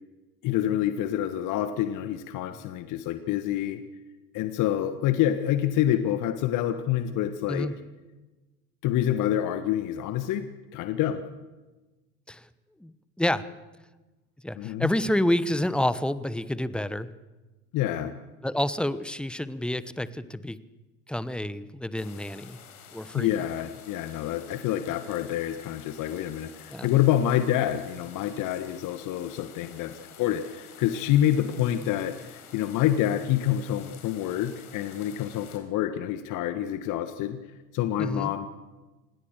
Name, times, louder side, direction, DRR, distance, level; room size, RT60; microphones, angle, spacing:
voice 1, 0.4-3.8 4.3-7.7 8.8-10.5 10.7-11.2 14.6-14.9 17.7-18.1 23.1-37.4 37.7-38.5, left 11 dB, 40° left, 10 dB, 1.5 m, -27 dB
voice 2, 13.2-13.5 14.4-17.1 18.4-20.6 21.1-22.6 22.9-23.3 26.7-26.9 38.0-38.3, left 1 dB, ahead, 16 dB, 1.0 m, -28 dB
sound 1, 22.0-35.6, left 8 dB, 65° left, 4.7 m, -49 dB
26.0 x 20.5 x 6.7 m, 1.2 s
figure-of-eight pair, 80°, 46 cm